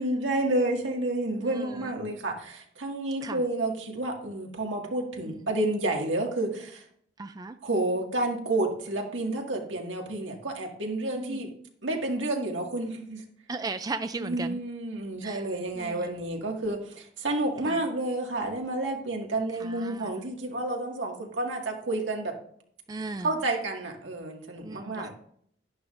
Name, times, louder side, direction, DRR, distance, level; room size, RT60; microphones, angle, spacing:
voice 1, 0.0-6.8 7.6-11.5 11.8-13.2 14.2-22.3 23.2-25.1, right 2 dB, 80° right, 1.9 m, -30 dB
voice 2, 1.4-1.9 3.2-3.4 5.3-5.4 7.2-7.6 11.1-11.4 13.5-14.6 15.2-15.4 15.8-16.1 17.7-17.8 19.6-20.1 22.9-23.3 24.6-25.1, right 3 dB, 20° right, 0.3 m, -36 dB
11.5 x 11.0 x 2.5 m
head